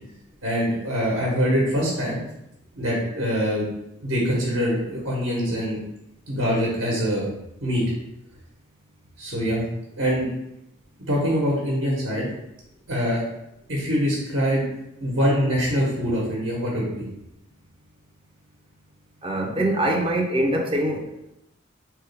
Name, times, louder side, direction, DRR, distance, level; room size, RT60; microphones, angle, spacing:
voice 1, 0.4-2.2 2.8-3.7 4.0-5.8 6.3-7.3 7.6-7.8 9.2-9.6 10.0-10.2 11.1-12.3 12.9-13.2 13.7-14.6 15.0-16.9, equal, 70° right, -4 dB, 1.2 m, -24 dB
voice 2, 19.2-21.1, right 1 dB, 25° right, 1 dB, 0.5 m, -23 dB
3.9 x 3.3 x 3.4 m, 0.85 s
head